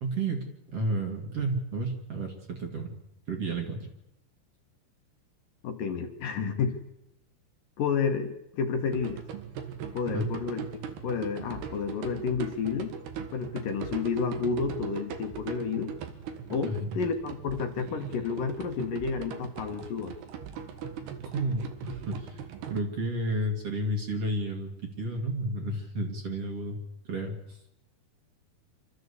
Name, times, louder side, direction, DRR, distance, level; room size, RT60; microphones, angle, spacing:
voice 1, 0.0-2.9 3.3-3.9 10.1-10.3 16.7-17.0 21.2-22.4 22.7-26.8 27.0-27.6, right 2 dB, 45° right, 3 dB, 2.9 m, -31 dB
voice 2, 5.6-6.8 7.8-9.2 9.9-10.6 11.0-12.9 13.3-15.9 16.5-20.1, left 5 dB, 65° left, 5 dB, 2.8 m, -30 dB
sound 1, 8.9-22.8, right 7 dB, 80° right, 3.7 m, -40 dB
26.5 x 13.5 x 8.3 m, 0.88 s
omnidirectional pair, 4.6 m